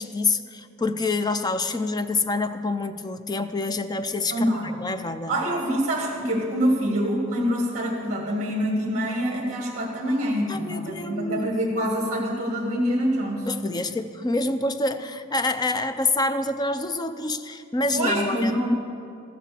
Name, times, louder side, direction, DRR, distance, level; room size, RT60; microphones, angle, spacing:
voice 1, 0.0-4.5 4.8-5.3 10.5-11.5 13.4-18.6, left 2 dB, 20° left, 10 dB, 0.4 m, -27 dB
voice 2, 4.3-4.7 5.3-13.5 17.9-18.7, equal, 35° right, -1 dB, 1.7 m, -25 dB
14.0 x 7.5 x 6.8 m, 2.4 s
head